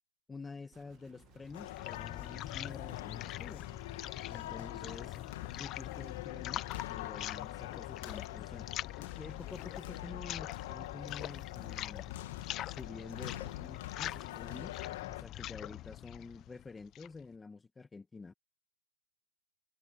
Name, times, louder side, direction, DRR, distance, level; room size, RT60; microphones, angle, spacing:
voice 1, 0.3-3.7 4.3-8.7 9.2-12.1 12.4-14.7 15.1-18.3, left 4 dB, 10° left, 1.8 m, -49 dB
sound 1, 0.7-5.1, right 15 dB, 25° right, 1.8 m, -63 dB
sound 2, 1.2-17.2, left 14 dB, 25° left, 0.9 m, -43 dB
sound 3, 1.5-15.2, left 15 dB, 50° left, 2.2 m, -45 dB
voice 2, 12.9-13.7, left 9 dB, 75° left, 5.6 m, -56 dB
hypercardioid pair, 155°, 0 cm